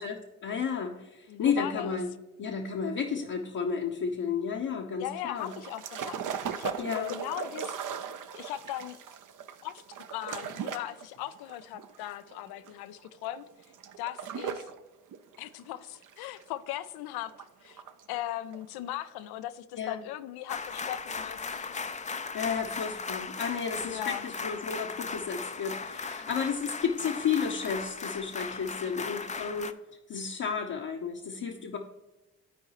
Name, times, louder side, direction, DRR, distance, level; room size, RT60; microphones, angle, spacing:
voice 1, 0.0-2.1 2.4-5.5 6.8-7.1 19.8-20.0 22.3-29.7 30.1-31.8, left 6 dB, 50° left, -1 dB, 0.9 m, -32 dB
voice 2, 1.3-2.0 5.0-6.2 6.5-7.8 8.3-9.0 9.6-13.5 14.0-14.7 15.4-17.8 18.1-21.7 22.1-22.3 23.8-24.2, left 13 dB, 70° left, 14 dB, 0.5 m, -38 dB
sound 1, 5.4-14.8 15.1-16.9 17.3-18.1 18.5-18.6, right 7 dB, 50° right, 0.7 m, -39 dB
sound 2, 20.5-29.7, left 4 dB, 20° left, 0.5 m, -37 dB
12.5 x 4.6 x 3.0 m, 1.1 s
hypercardioid pair, 45°, 39 cm